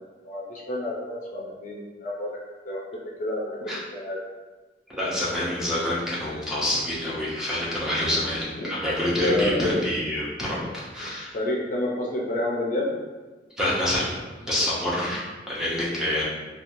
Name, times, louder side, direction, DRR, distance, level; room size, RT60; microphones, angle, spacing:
voice 1, 0.2-2.3 2.6-4.2 8.0-8.2 8.6-8.7 9.2-9.8 10.5-10.7 11.0-12.9 14.4-14.5, left 1 dB, 45° left, -3 dB, 0.5 m, -30 dB
voice 2, 4.9-11.3 13.6-16.2, left 1 dB, 5° right, -8 dB, 0.6 m, -27 dB
2.9 x 2.3 x 2.6 m, 1.3 s
head